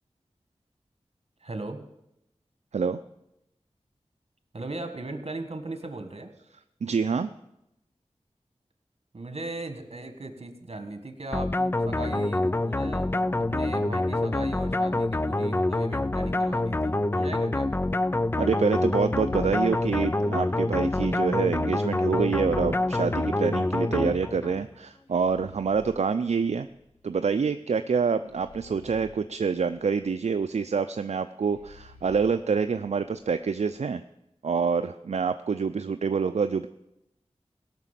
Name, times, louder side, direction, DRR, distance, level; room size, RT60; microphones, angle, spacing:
voice 1, 1.4-1.9 4.5-6.3 9.1-17.7, right 2 dB, 60° right, 7 dB, 1.5 m, -38 dB
voice 2, 6.8-7.3 18.4-26.7 27.0-34.0 34.4-36.7, right 5 dB, 80° right, 9 dB, 0.4 m, -26 dB
sound 1, 11.3-24.6, left 2 dB, 20° left, 0.4 m, -26 dB
sound 2, 21.9-24.1 25.1-27.4 28.3-30.4 31.4-33.6, left 1 dB, 80° left, 2.8 m, -54 dB
16.5 x 6.0 x 7.5 m, 0.85 s
wide cardioid pair, 50°, 11 cm